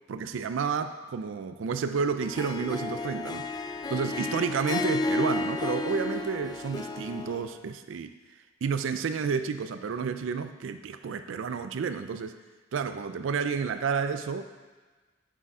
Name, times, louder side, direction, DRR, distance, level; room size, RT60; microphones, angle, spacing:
voice 1, 0.1-3.5 3.9-8.1 8.6-12.4 12.7-14.5, right 5 dB, 90° right, 10 dB, 0.4 m, -30 dB
Harp, 2.2-7.5, left 3 dB, 20° left, 0.4 m, -32 dB
10.0 x 5.0 x 4.8 m, 1.3 s
head